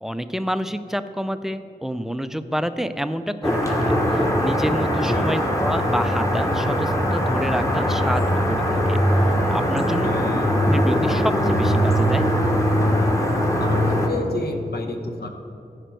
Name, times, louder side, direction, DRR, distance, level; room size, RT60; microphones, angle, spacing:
voice 1, 0.0-10.1 10.6-12.3, equal, ahead, 11 dB, 0.4 m, -28 dB
sound 1, 3.4-14.1, equal, 20° left, 1.1 m, -21 dB
voice 2, 5.0-5.4 10.0-10.5 13.6-15.3, left 2 dB, 75° left, 4 dB, 1.0 m, -30 dB
14.5 x 5.1 x 4.5 m, 2.6 s
wide cardioid pair, 95°, 17 cm